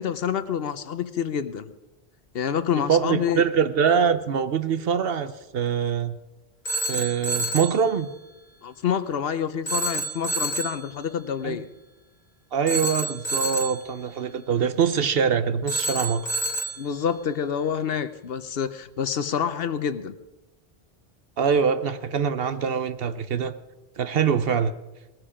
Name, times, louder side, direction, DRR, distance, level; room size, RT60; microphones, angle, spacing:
voice 1, 0.0-1.7 2.3-3.4 8.6-11.7 16.8-20.1, left 8 dB, 70° left, 13 dB, 0.9 m, -27 dB
voice 2, 2.8-6.2 6.9-8.1 11.4-11.6 12.5-16.3 21.4-23.5 24.0-24.7, right 7 dB, 70° right, 12 dB, 0.9 m, -24 dB
Telephone, 6.7-7.8 9.7-10.8 12.7-13.8 15.7-16.8, right 2 dB, 50° left, 1.5 m, -28 dB
19.0 x 14.0 x 5.0 m, 1.0 s
omnidirectional pair, 1.0 m